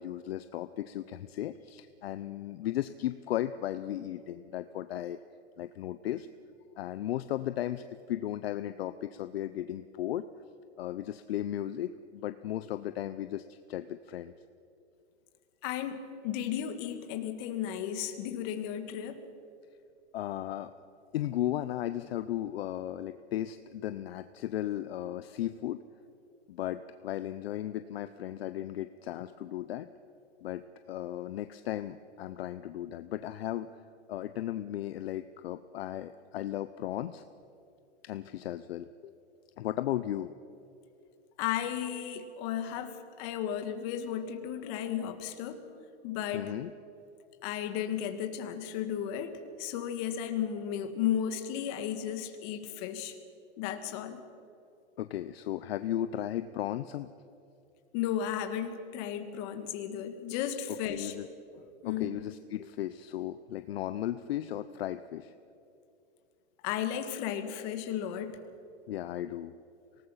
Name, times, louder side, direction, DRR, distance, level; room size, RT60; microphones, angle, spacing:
voice 1, 0.0-5.2 5.6-6.3 6.8-10.2 10.8-14.3 20.1-20.7 21.1-25.8 26.5-29.9 30.4-33.8 34.1-37.2 38.0-39.1 39.6-40.3 46.3-46.7 55.0-57.1 60.9-61.3 61.8-65.3 68.9-69.6, left 12 dB, 60° left, 12 dB, 0.7 m, -35 dB
voice 2, 15.6-19.2 41.4-45.7 46.0-46.5 47.4-53.2 53.6-54.2 57.9-61.1 61.5-62.1 66.6-68.4, left 9 dB, 35° left, 8 dB, 1.7 m, -34 dB
26.0 x 19.0 x 5.7 m, 2.6 s
hypercardioid pair, 150°, 35 cm